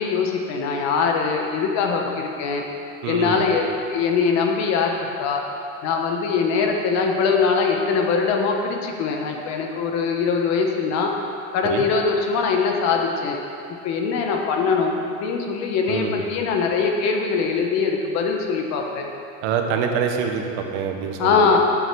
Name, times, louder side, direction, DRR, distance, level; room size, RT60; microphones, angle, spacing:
voice 1, 0.0-2.6 3.1-5.4 5.8-11.1 11.5-13.4 13.8-19.1 21.2-21.6, left 5 dB, 40° left, 2 dB, 1.2 m, -22 dB
voice 2, 3.0-3.4 11.6-11.8 15.9-16.2 19.4-21.6, right 6 dB, 55° right, 4 dB, 1.2 m, -25 dB
9.3 x 8.0 x 6.1 m, 2.8 s
supercardioid pair, 155°, 41 cm